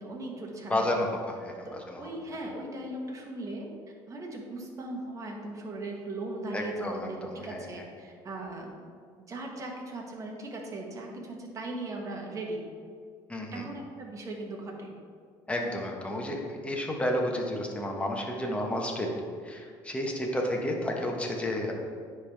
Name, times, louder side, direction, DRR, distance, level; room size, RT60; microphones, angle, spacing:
voice 1, 0.0-1.1 1.6-1.7 2.0-3.7 4.1-8.9 9.3-12.6 13.5-14.9, right 2 dB, 35° right, 0 dB, 1.3 m, -38 dB
voice 2, 0.7-2.1 6.5-7.6 13.3-13.7 15.5-19.1 19.4-21.7, left 1 dB, 15° left, 0 dB, 1.1 m, -31 dB
10.0 x 3.5 x 3.5 m, 2.1 s
cardioid pair, 105°, 9 cm